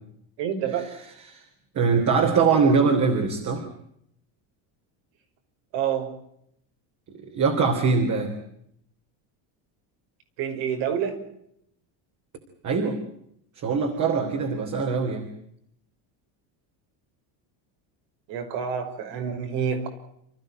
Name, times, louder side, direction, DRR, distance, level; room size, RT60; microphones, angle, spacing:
voice 1, 0.4-0.9 5.7-6.1 10.4-11.2 18.3-19.9, right 8 dB, 65° right, 7 dB, 5.7 m, -28 dB
voice 2, 1.8-3.7 7.1-8.4 12.6-13.0 13.6-15.3, right 5 dB, 35° right, 4 dB, 3.5 m, -22 dB
28.5 x 15.0 x 9.1 m, 0.73 s
cardioid pair, 165°, 48 cm